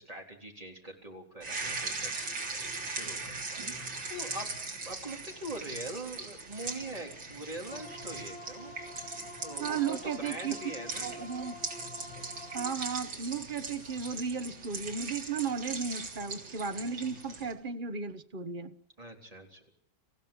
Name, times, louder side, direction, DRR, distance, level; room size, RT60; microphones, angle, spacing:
voice 1, 0.0-3.4 4.1-8.7 9.4-11.1 19.0-19.7, right 1 dB, 15° right, 3.8 m, -43 dB
sound 1, 1.4-17.5, right 3 dB, 70° right, 4.2 m, -40 dB
sound 2, 7.7-12.7, left 2 dB, 30° left, 3.4 m, -47 dB
voice 2, 9.6-10.6 11.0-11.5 12.5-18.7, right 6 dB, 30° right, 1.0 m, -35 dB
27.0 x 15.5 x 8.7 m
omnidirectional pair, 2.2 m